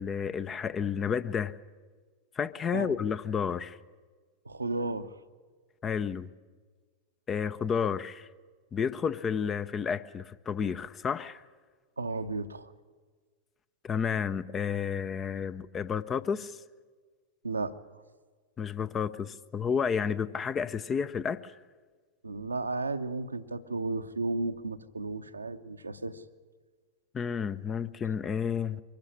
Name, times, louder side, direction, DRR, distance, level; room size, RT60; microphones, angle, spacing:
voice 1, 0.0-1.6 2.4-3.8 5.8-6.3 7.3-8.3 8.7-11.4 13.8-16.6 18.6-21.5 27.1-28.8, left 7 dB, 20° left, 0.6 m, -31 dB
voice 2, 4.4-5.1 12.0-12.7 17.4-17.7 22.2-26.2, right 3 dB, 80° right, 0.8 m, -33 dB
23.5 x 12.0 x 9.9 m
figure-of-eight pair, 90°, 0 cm